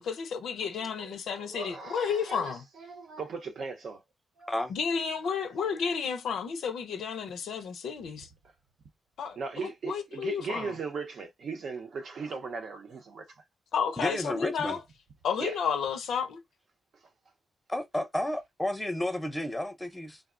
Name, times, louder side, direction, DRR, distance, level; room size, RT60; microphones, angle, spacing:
voice 1, 0.0-2.6 4.7-8.3 9.2-10.7 13.7-14.8 15.2-16.4, left 6 dB, 85° left, 0.4 m, -32 dB
voice 2, 1.4-4.0 4.4-4.5 5.2-5.4 9.4-13.4 15.4-15.6, right 4 dB, 70° right, 0.7 m, -38 dB
voice 3, 14.0-14.8 17.7-20.2, left 1 dB, 10° left, 0.6 m, -32 dB
3.5 x 2.0 x 2.4 m
cardioid pair, 80°, 0 cm